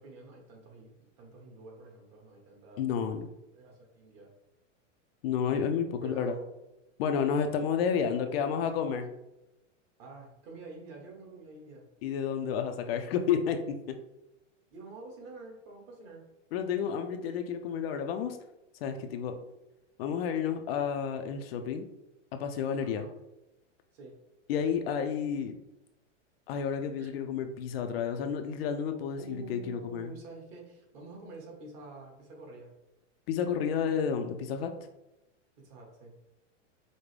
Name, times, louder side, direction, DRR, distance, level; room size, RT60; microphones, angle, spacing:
voice 1, 0.0-2.8 3.5-4.3 6.0-6.4 7.3-8.9 10.0-11.8 14.7-16.2 22.8-23.1 23.9-24.1 27.0-27.1 29.2-32.7 35.6-36.1, right 3 dB, 40° right, -1 dB, 1.4 m, -48 dB
voice 2, 2.8-3.3 5.2-6.3 7.0-9.1 12.0-14.0 16.5-18.4 18.8-19.3 20.0-21.9 22.3-23.1 24.5-25.6 26.5-30.1 33.3-34.7, left 7 dB, 55° left, 7 dB, 0.5 m, -31 dB
5.1 x 2.1 x 3.2 m, 0.95 s
supercardioid pair, 140°, 38 cm